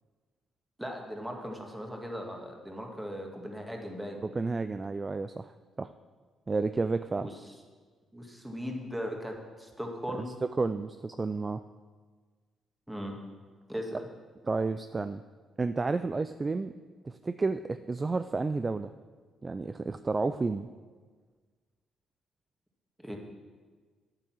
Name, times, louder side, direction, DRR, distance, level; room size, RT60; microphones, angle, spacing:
voice 1, 0.8-4.2 7.1-7.3 8.1-10.3 12.9-13.2 13.7-14.1 23.0-23.2, equal, 5° right, 1 dB, 1.9 m, -38 dB
voice 2, 4.2-5.5 5.8-5.9 6.5-7.3 10.4-11.6 14.4-15.2 15.6-16.7 17.0-18.9 19.4-20.7, right 3 dB, 25° right, 11 dB, 0.3 m, -31 dB
9.5 x 8.7 x 6.2 m, 1.5 s
cardioid pair, 90°, 0 cm